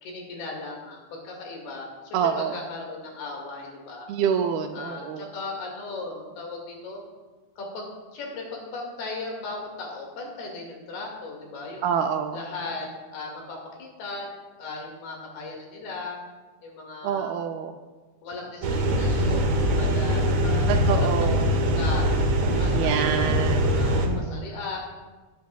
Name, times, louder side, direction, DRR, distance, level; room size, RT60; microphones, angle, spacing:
voice 1, 0.0-4.1 4.7-7.0 7.6-11.9 12.3-14.3 14.6-16.2 16.6-17.3 18.2-22.1 22.5-24.8, left 3 dB, 75° left, -1 dB, 3.9 m, -37 dB
voice 2, 2.1-2.6 4.1-5.3 11.8-12.4 17.0-17.7 20.7-21.5 22.7-23.8 24.1-24.5, right 8 dB, 80° right, 5 dB, 2.3 m, -27 dB
sound 1, 18.6-24.1, equal, 65° right, 1.7 m, -22 dB
19.0 x 10.5 x 2.3 m, 1.3 s
omnidirectional pair, 4.7 m